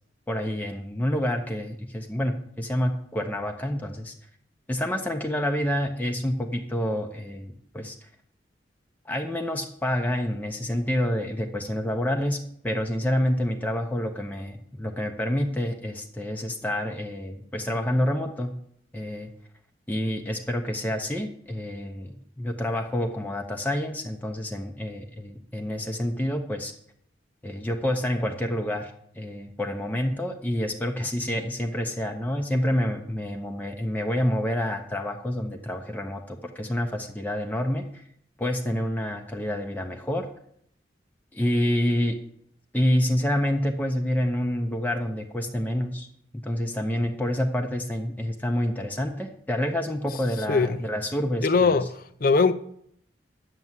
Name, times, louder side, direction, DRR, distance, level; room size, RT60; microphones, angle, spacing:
voice 1, 0.3-4.1 4.7-8.1 9.1-18.5 18.9-19.3 19.9-26.7 27.4-38.0 38.4-40.2 41.3-42.2 42.7-46.1 46.3-51.8, equal, 10° left, 0.7 m, -28 dB
voice 2, 51.4-52.5, left 4 dB, 50° left, 0.5 m, -21 dB
9.5 x 6.8 x 7.5 m
head